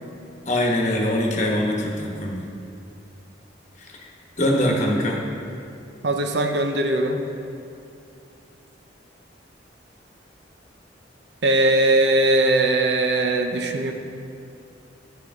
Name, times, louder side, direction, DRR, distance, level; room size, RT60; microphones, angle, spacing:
voice 1, 0.5-2.4 3.8-4.1 4.4-5.2, left 1 dB, 40° left, 0 dB, 1.1 m, -23 dB
voice 2, 6.0-7.2 11.4-13.9, right 2 dB, 65° right, 5 dB, 0.7 m, -20 dB
11.0 x 6.8 x 3.7 m, 2.6 s
head